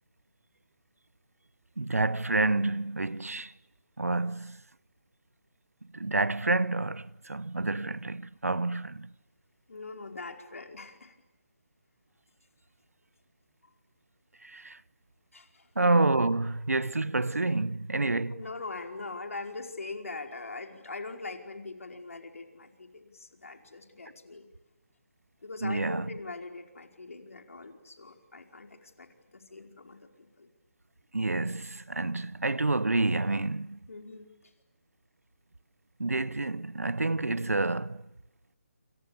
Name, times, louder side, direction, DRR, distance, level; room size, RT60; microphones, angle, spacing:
voice 1, 1.8-3.5 4.0-4.6 5.9-9.1 14.4-14.8 15.8-18.4 25.6-26.0 31.1-33.8 36.0-38.0, right 2 dB, 85° right, 1.0 m, -28 dB
voice 2, 9.7-11.1 15.3-15.7 18.3-24.5 25.4-30.5 33.9-34.5, left 3 dB, 70° left, 4.9 m, -42 dB
29.0 x 28.5 x 7.0 m
figure-of-eight pair, 150°, 8 cm